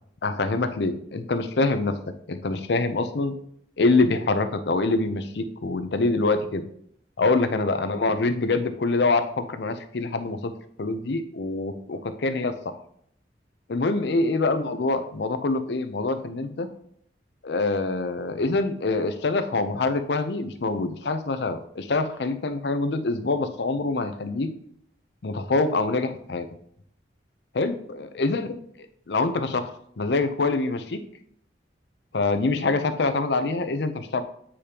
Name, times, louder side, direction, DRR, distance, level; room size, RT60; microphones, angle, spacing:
voice 1, 0.2-2.0 2.3-3.3 3.8-6.6 7.2-10.5 10.8-12.5 13.7-16.7 17.4-24.5 25.2-26.5 27.5-28.5 29.1-29.7 30.0-31.0 32.1-34.2, left 3 dB, 65° left, 10 dB, 0.6 m, -25 dB
8.5 x 5.0 x 2.9 m, 0.67 s
head